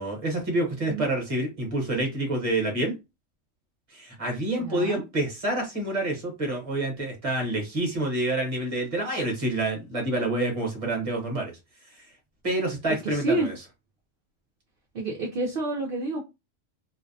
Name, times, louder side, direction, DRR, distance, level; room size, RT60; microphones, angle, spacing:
voice 1, 0.0-2.9 3.9-11.5 12.4-13.5, right 1 dB, 30° right, 1 dB, 0.9 m, -27 dB
voice 2, 4.6-5.0 12.9-13.5 14.9-16.2, right 2 dB, 55° right, 1 dB, 0.7 m, -29 dB
2.6 x 2.0 x 2.6 m, 0.25 s
omnidirectional pair, 1.4 m